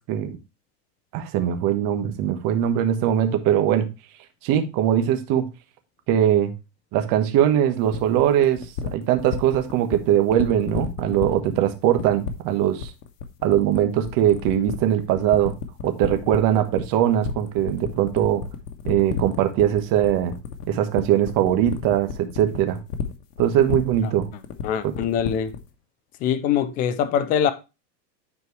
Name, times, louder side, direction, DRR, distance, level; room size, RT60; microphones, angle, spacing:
voice 1, 1.1-3.9 4.4-5.5 6.1-6.5 6.9-8.6 8.9-12.9 13.4-15.5 15.8-18.4 18.8-20.3 20.7-22.8 23.4-24.3 24.8-24.9, right 11 dB, 40° right, 1.4 m, -21 dB
sound 1, 7.9-25.7, left 7 dB, 75° left, 1.5 m, -31 dB
voice 2, 24.6-25.5 26.2-27.5, left 8 dB, 20° left, 0.3 m, -23 dB
9.8 x 4.5 x 3.2 m
supercardioid pair, 130°, 49 cm